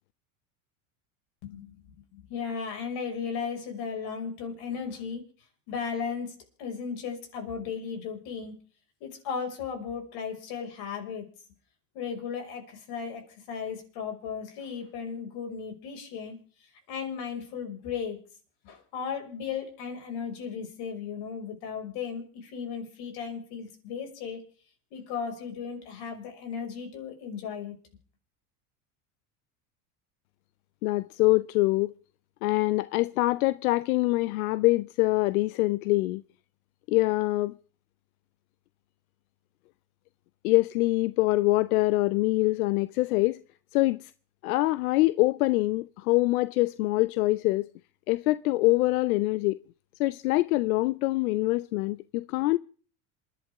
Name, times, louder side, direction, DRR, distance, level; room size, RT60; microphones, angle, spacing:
voice 1, 1.4-1.8 2.1-5.2 5.7-8.5 9.0-11.3 11.9-16.4 16.9-18.2 18.6-24.4 24.9-27.8, left 6 dB, 60° left, 5.7 m, -36 dB
voice 2, 30.8-31.9 32.4-36.2 36.9-37.5 40.4-43.4 43.7-44.1 44.4-47.7 48.1-49.6 50.0-52.6, left 20 dB, 90° left, 0.6 m, -24 dB
27.5 x 11.5 x 3.6 m
supercardioid pair, 120°, 42 cm